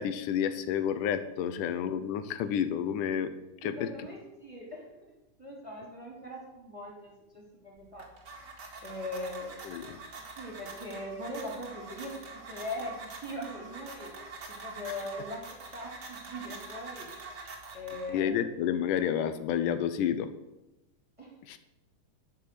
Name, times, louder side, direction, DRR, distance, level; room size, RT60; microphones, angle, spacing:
voice 1, 0.0-3.3 3.6-3.9 9.7-10.0 14.9-15.0 18.1-20.3 21.5-21.6, left 9 dB, 90° left, 11 dB, 2.4 m, -30 dB
voice 2, 3.6-4.9 5.4-8.1 8.8-9.6 10.4-14.1 14.5-17.1 17.7-18.4 21.2-21.3, left 1 dB, 10° right, -2 dB, 2.7 m, -40 dB
sound 1, 7.8-18.4, right 3 dB, 35° right, 2.2 m, -45 dB
12.5 x 6.3 x 7.5 m, 0.97 s
omnidirectional pair, 3.6 m